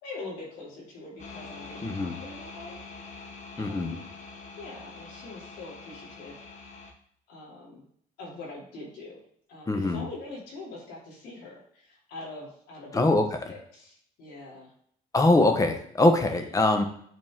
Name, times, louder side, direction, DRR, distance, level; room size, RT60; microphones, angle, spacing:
voice 1, 0.0-2.8 3.5-4.1 4.6-6.8 7.3-7.8 8.2-9.2 9.5-13.1 13.5-14.7 16.2-16.7, left 2 dB, 85° left, -4 dB, 3.0 m, -43 dB
sound 1, 1.2-6.9, left 4 dB, 45° left, 1.5 m, -44 dB
voice 2, 1.8-2.1 3.6-4.0 9.7-10.1 12.9-13.5 15.1-16.8, left 2 dB, 20° left, 6 dB, 1.1 m, -23 dB
8.9 x 4.2 x 3.8 m, 0.65 s
cardioid pair, 110°, 17 cm